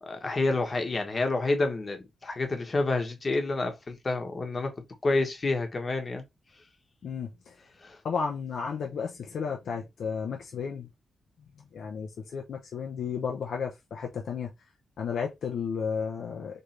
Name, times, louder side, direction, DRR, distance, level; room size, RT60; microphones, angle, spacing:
voice 1, 0.0-4.7 5.0-6.2 7.8-8.0, left 2 dB, 35° left, 1.2 m, -28 dB
voice 2, 7.0-7.5 8.0-10.9 11.7-14.5 15.0-16.6, left 6 dB, 80° left, 0.8 m, -33 dB
4.3 x 3.3 x 3.3 m
wide cardioid pair, 120°, 0 cm